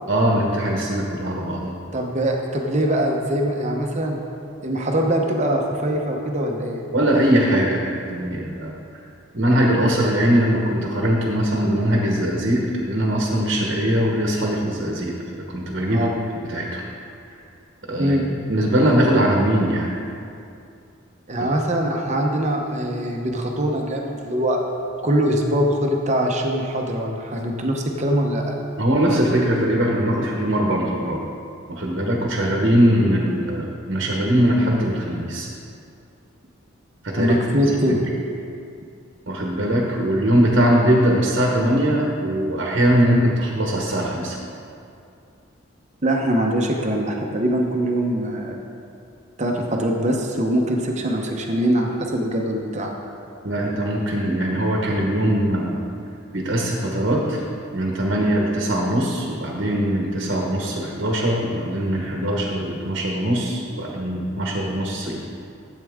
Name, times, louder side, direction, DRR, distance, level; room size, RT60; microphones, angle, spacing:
voice 1, 0.1-1.8 6.9-8.7 9.3-16.1 16.4-16.8 17.9-18.1 18.5-19.9 28.8-31.2 31.7-35.5 37.0-37.3 37.9-38.0 39.3-44.4 53.4-55.8 56.3-57.4 57.7-65.2, equal, 50° right, -1 dB, 1.1 m, -21 dB
voice 2, 1.9-4.2 4.6-6.9 15.9-16.1 18.0-18.3 21.3-24.6 25.0-28.6 37.2-38.0 46.0-48.5 49.4-52.9, right 1 dB, 30° right, 1 dB, 0.9 m, -22 dB
12.5 x 8.2 x 3.6 m, 2.5 s
head